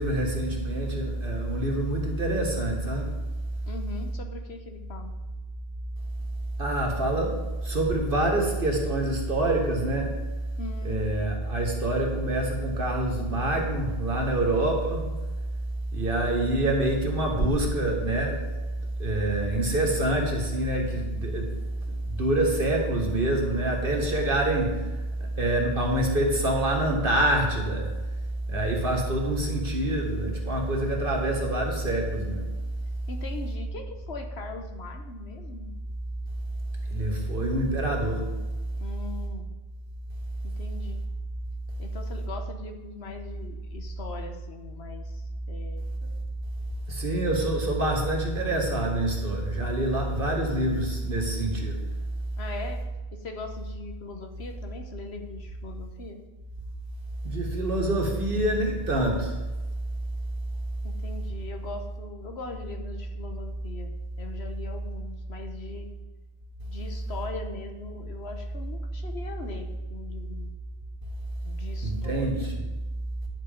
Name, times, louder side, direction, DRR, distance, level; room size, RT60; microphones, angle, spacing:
voice 1, 0.0-3.1 6.6-10.2 10.8-15.1 15.9-18.5 19.0-21.6 22.0-25.0 25.4-27.9 28.5-32.5 36.9-38.3 46.9-51.8 57.2-59.4 71.8-72.7, right 1 dB, 45° right, 1 dB, 2.1 m, -26 dB
voice 2, 3.7-5.1 10.6-11.0 33.1-35.7 38.8-39.5 40.4-41.0 41.8-45.9 52.4-52.8 53.1-56.2 57.9-58.2 60.8-63.9 64.2-65.9 66.7-70.5 71.4-72.5, left 3 dB, 60° left, 5 dB, 1.3 m, -40 dB
10.5 x 7.5 x 5.2 m, 1.2 s
omnidirectional pair, 1.2 m